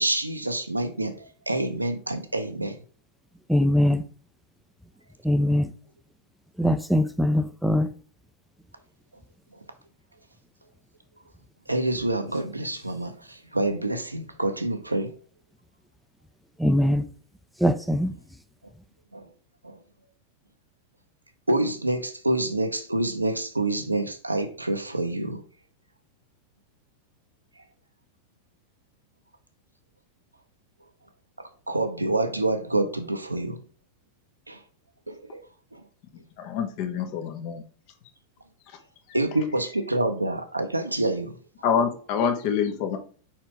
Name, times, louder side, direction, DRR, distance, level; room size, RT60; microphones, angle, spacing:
voice 1, 0.0-2.8 11.7-15.1 19.1-19.2 19.6-19.8 21.5-25.4 31.7-33.6 34.5-34.6 35.1-35.4 35.7-35.8 39.1-41.4, right 2 dB, 85° right, 0.7 m, -27 dB
voice 2, 3.5-4.0 5.2-5.7 6.6-7.9 16.6-17.0 17.6-18.1, left 1 dB, ahead, 0.5 m, -22 dB
voice 3, 36.4-37.6 39.9-40.0 41.6-43.0, left 7 dB, 45° left, 1.1 m, -26 dB
5.1 x 4.4 x 4.5 m
figure-of-eight pair, 90°, 0 cm